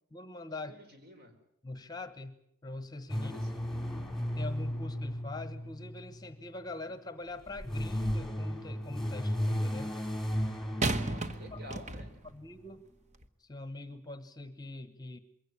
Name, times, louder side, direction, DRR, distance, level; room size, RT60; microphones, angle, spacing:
voice 1, 0.1-0.8 1.6-3.3 3.7-4.1 4.4-10.0 11.0-11.1 11.5-11.6 12.2-12.8 13.4-15.2, left 2 dB, 20° left, 12 dB, 1.1 m, -43 dB
voice 2, 0.6-1.3 3.2-3.6 11.0-12.2, equal, 50° right, 6 dB, 4.9 m, -50 dB
sound 1, 3.1-6.5 7.4-12.2, equal, ahead, 2.3 m, -35 dB
sound 2, 7.6-8.4 10.8-12.3 13.1-13.3, right 3 dB, 35° right, 1.1 m, -36 dB
23.0 x 17.0 x 9.7 m, 0.77 s
head